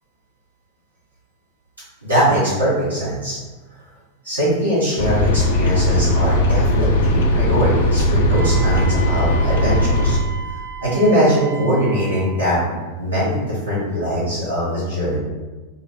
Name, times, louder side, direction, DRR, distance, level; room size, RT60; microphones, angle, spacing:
voice 1, 2.0-3.4 4.2-10.2 10.5-15.2, equal, 85° right, -11 dB, 1.4 m, -21 dB
sound 1, 5.0-10.2, equal, 55° left, 0.4 m, -18 dB
Wind instrument woodwind instrument, 8.3-12.4, right 3 dB, 65° right, 0.5 m, -34 dB
3.9 x 2.0 x 2.7 m, 1.2 s
figure-of-eight pair, 90°, 0 cm